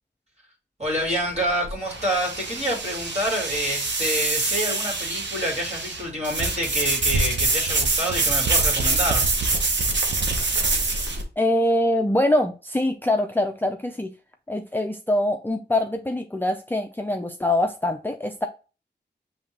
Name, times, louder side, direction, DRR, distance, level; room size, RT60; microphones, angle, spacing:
voice 1, 0.8-9.2, equal, 35° right, 2.4 m, -27 dB
sound 1, 0.8-11.2, right 3 dB, 80° right, 0.9 m, -25 dB
voice 2, 11.4-14.1 14.5-18.5, left 1 dB, 10° left, 0.5 m, -24 dB
5.5 x 3.3 x 2.9 m
wide cardioid pair, 60°, 18 cm